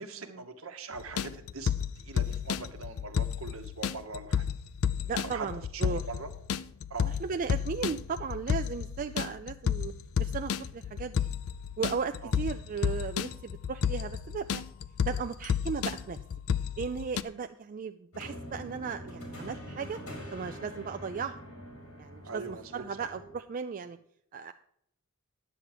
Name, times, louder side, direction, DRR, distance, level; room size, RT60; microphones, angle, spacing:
voice 1, 0.0-4.5 5.2-5.5 5.7-6.3 6.9-7.1 12.2-12.3 22.3-23.1, right 4 dB, 70° right, 7 dB, 1.1 m, -42 dB
sound 1, 1.0-17.2, left 7 dB, 70° left, 0.4 m, -32 dB
voice 2, 5.0-6.0 7.0-9.9 10.2-11.3 11.8-14.6 15.0-16.2 16.8-20.0 20.3-21.4 22.0-24.0 24.3-24.5, right 5 dB, 40° right, 7 dB, 0.4 m, -36 dB
sound 2, 18.1-23.4, equal, 90° left, 2.9 m, -44 dB
9.9 x 7.3 x 4.9 m, 0.68 s
head